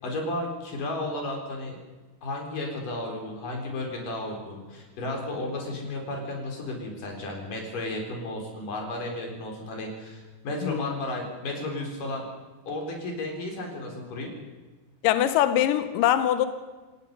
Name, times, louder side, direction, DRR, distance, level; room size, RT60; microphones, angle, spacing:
voice 1, 0.0-1.8 2.2-12.2 12.7-14.3, left 2 dB, 50° left, 1 dB, 5.5 m, -33 dB
voice 2, 10.6-10.9 15.0-16.5, left 12 dB, 80° left, 11 dB, 2.0 m, -23 dB
28.5 x 17.0 x 5.4 m, 1.3 s
omnidirectional pair, 5.1 m